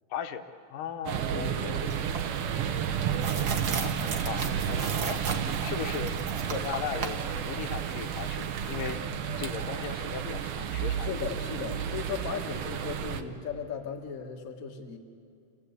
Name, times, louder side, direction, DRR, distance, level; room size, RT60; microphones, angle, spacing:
voice 1, 0.1-0.5 0.7-1.9 3.8-5.3 5.6-6.2 6.5-9.0 9.4-11.3, left 8 dB, 80° left, 7 dB, 2.4 m, -37 dB
sound 1, 1.0-13.2, right 8 dB, 75° right, 1.3 m, -32 dB
voice 2, 1.3-1.8 3.1-3.5 11.0-15.0, left 6 dB, 35° left, 1 dB, 1.4 m, -37 dB
sound 2, 1.9-9.0, right 4 dB, 55° right, 1.0 m, -37 dB
27.5 x 16.5 x 8.3 m, 2.4 s
omnidirectional pair, 3.8 m